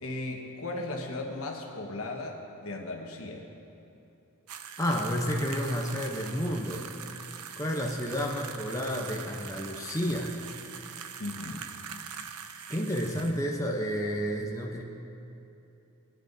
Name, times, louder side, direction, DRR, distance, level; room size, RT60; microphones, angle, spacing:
voice 1, 0.0-3.5 11.2-11.7, left 2 dB, 65° left, 1 dB, 1.3 m, -36 dB
sound 1, 4.5-13.4, right 7 dB, 80° right, 0.6 m, -42 dB
voice 2, 4.8-6.8 7.2-10.4 12.7-14.8, equal, 15° left, -1 dB, 0.7 m, -31 dB
20.5 x 9.8 x 2.7 m, 2.9 s
head